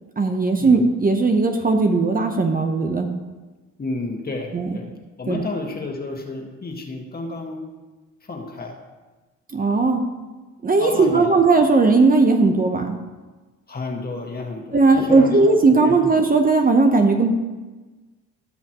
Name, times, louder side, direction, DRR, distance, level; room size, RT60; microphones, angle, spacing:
voice 1, 0.2-3.1 4.5-4.7 5.3-5.4 9.5-10.0 10.6-12.9 14.7-17.3, right 3 dB, 30° right, 4 dB, 0.9 m, -17 dB
voice 2, 3.8-4.9 5.2-7.7 8.3-8.8 10.8-11.4 13.7-14.8 15.1-15.5 15.8-15.9, left 3 dB, 30° left, 1 dB, 1.7 m, -31 dB
16.5 x 5.7 x 3.0 m, 1.2 s
cardioid pair, 90°, 30 cm